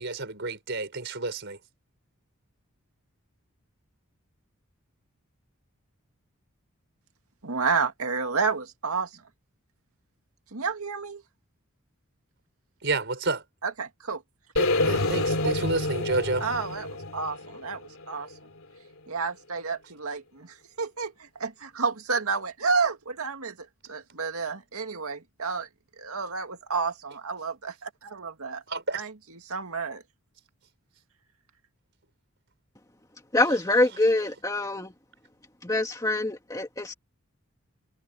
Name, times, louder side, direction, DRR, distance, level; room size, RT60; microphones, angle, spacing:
voice 1, 0.0-1.6 12.8-13.4 14.6-16.5 28.7-29.0, right 3 dB, 55° right, 5.2 m, -30 dB
voice 2, 7.4-9.2 10.5-11.2 13.6-14.2 15.4-15.5 16.4-18.3 19.1-25.7 26.0-28.6 28.9-30.0, right 5 dB, 80° right, 2.2 m, -30 dB
sound 1, 14.6-18.6, left 2 dB, 75° left, 2.7 m, -28 dB
voice 3, 33.3-34.9 35.6-36.9, left 2 dB, 15° left, 2.1 m, -25 dB
head